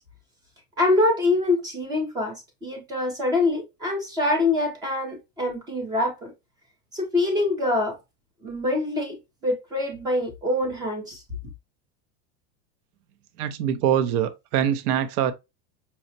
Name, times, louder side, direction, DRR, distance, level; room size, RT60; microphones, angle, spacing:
voice 1, 0.8-6.3 6.9-8.0 8.4-9.2 9.4-11.2, left 2 dB, 10° right, 0.4 m, -25 dB
voice 2, 13.4-15.3, right 9 dB, 70° right, 0.7 m, -23 dB
5.6 x 2.0 x 2.6 m
supercardioid pair, 170°, 47 cm